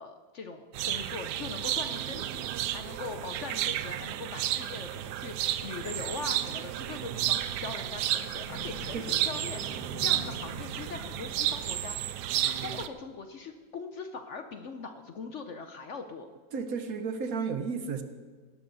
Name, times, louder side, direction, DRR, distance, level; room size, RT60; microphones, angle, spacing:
voice 1, 0.0-12.2 12.5-16.3, left 4 dB, 55° left, 7 dB, 0.9 m, -41 dB
sound 1, 0.7-12.9, right 12 dB, 80° right, 1.2 m, -32 dB
sound 2, 8.4-12.3, left 4 dB, 80° left, 2.1 m, -45 dB
voice 2, 16.5-18.0, right 5 dB, 60° right, 9 dB, 1.3 m, -33 dB
18.0 x 12.5 x 4.0 m, 1.5 s
omnidirectional pair, 1.8 m